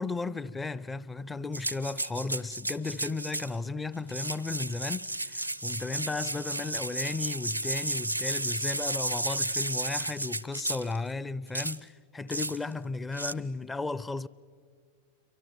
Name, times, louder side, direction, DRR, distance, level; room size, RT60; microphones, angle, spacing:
voice 1, 0.0-14.3, left 3 dB, 10° left, 0.5 m, -35 dB
sound 1, 1.5-3.5 4.0-11.0 11.5-11.8 12.3-12.6 13.1-13.3, right 2 dB, 90° right, 0.6 m, -33 dB
29.0 x 24.0 x 6.0 m
figure-of-eight pair, 90°, 0 cm